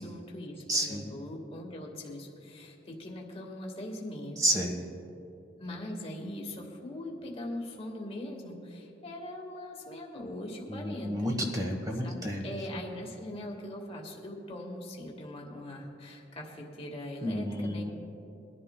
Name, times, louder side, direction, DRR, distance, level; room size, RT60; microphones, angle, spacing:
voice 1, 0.0-4.4 5.6-11.3 12.0-17.9, left 1 dB, 30° left, 0 dB, 1.5 m, -41 dB
voice 2, 0.7-1.1 4.4-4.8 10.7-12.4 17.2-17.9, equal, 20° right, 2 dB, 1.1 m, -30 dB
22.5 x 11.0 x 2.2 m, 2.8 s
head